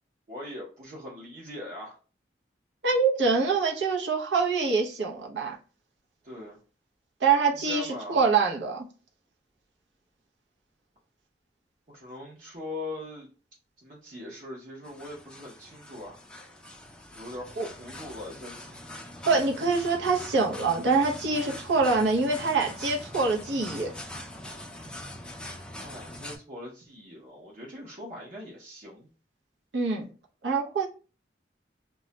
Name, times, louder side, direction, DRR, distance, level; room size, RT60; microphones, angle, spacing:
voice 1, 0.3-2.0 6.2-6.6 7.5-8.2 11.9-13.3 13.8-16.2 17.1-18.8 25.8-29.1, left 1 dB, 50° right, 0.7 m, -41 dB
voice 2, 2.8-5.6 7.2-8.8 17.6-17.7 19.3-23.9 29.7-30.1 30.4-30.9, right 4 dB, 90° right, 0.7 m, -25 dB
sound 1, 14.8-26.4, left 1 dB, 5° left, 0.3 m, -43 dB
2.3 x 2.1 x 3.8 m
head